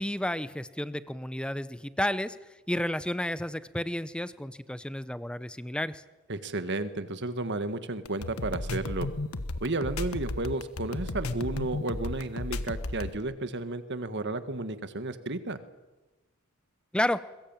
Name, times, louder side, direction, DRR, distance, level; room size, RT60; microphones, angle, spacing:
voice 1, 0.0-2.4 2.7-6.0 16.9-17.2, left 1 dB, 5° left, 14 dB, 0.7 m, -31 dB
voice 2, 6.3-9.1 9.6-15.6, right 2 dB, 55° right, 11 dB, 1.7 m, -32 dB
sound 1, 8.1-13.2, left 2 dB, 80° left, 1.3 m, -34 dB
22.0 x 21.5 x 9.0 m, 1.1 s
head